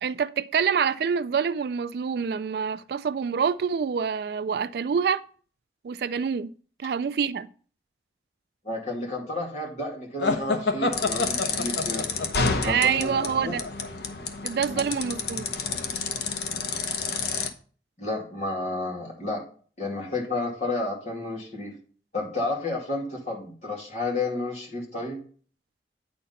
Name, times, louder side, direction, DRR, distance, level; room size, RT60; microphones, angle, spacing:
voice 1, 0.0-5.2 5.8-6.5 6.8-7.5 12.6-13.6 14.4-15.4, right 6 dB, 60° right, 0.3 m, -26 dB
voice 2, 8.6-12.1 12.6-13.5 14.7-14.9 18.0-19.4 19.8-21.8 22.1-25.2, left 2 dB, 40° left, 2.5 m, -31 dB
sound 1, 10.2-13.9, left 3 dB, 90° left, 1.0 m, -28 dB
sound 2, 10.9-17.5, left 4 dB, 65° left, 0.8 m, -30 dB
9.1 x 4.4 x 5.6 m
head